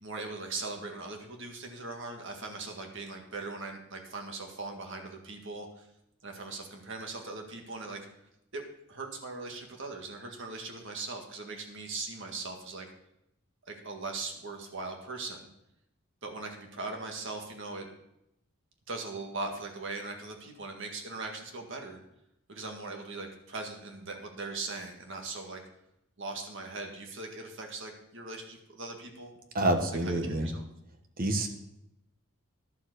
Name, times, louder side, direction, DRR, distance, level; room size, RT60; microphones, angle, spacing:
voice 1, 0.0-5.9 6.2-8.0 8.5-8.6 8.9-12.9 13.7-15.5 16.2-17.9 18.9-22.0 22.5-25.6 26.2-29.3 30.0-30.6, right 3 dB, 55° right, 3 dB, 1.9 m, -40 dB
voice 2, 29.5-30.5 31.2-31.5, right 1 dB, 40° right, 6 dB, 1.2 m, -27 dB
11.5 x 7.2 x 6.7 m, 0.82 s
head